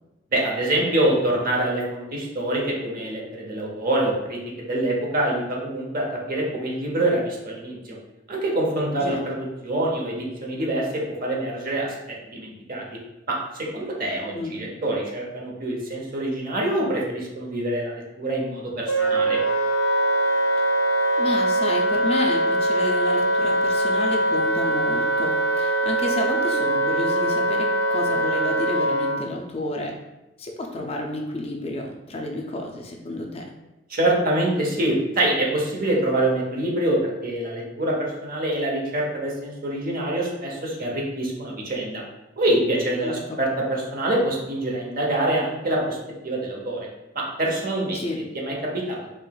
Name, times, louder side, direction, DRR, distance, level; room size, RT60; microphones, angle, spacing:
voice 1, 0.3-4.4 4.7-8.0 8.3-11.9 12.3-12.8 13.3-13.4 13.7-19.4 33.9-42.0 42.4-46.0 46.2-46.9 47.1-48.0 48.3-49.0, right 1 dB, 50° right, -2 dB, 0.8 m, -25 dB
Wind instrument woodwind instrument, 18.9-29.2, right 1 dB, 75° left, 0.6 m, -22 dB
voice 2, 21.2-29.9 30.4-33.4 43.0-43.4 47.9-48.2, left 1 dB, 30° left, 1 dB, 0.4 m, -30 dB
4.6 x 2.9 x 2.3 m, 0.99 s
head